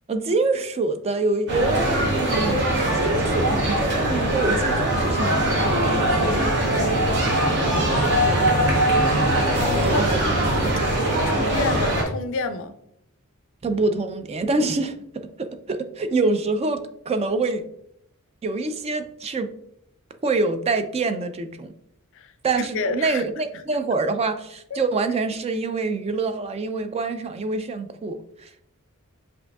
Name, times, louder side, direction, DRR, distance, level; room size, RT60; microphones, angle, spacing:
voice 1, 0.1-7.3 7.8-8.0 8.2-8.5 9.9-10.2 13.6-17.7 18.4-19.5 20.2-21.7 22.4-28.5, right 3 dB, 30° right, 0.3 m, -26 dB
sound 1, 1.5-12.0, right 1 dB, 55° right, 1.0 m, -21 dB
voice 2, 9.5-10.1 10.4-10.6 11.3-12.8 22.1-22.3 22.6-23.2, left 4 dB, 60° left, 0.4 m, -28 dB
7.5 x 2.6 x 2.3 m
head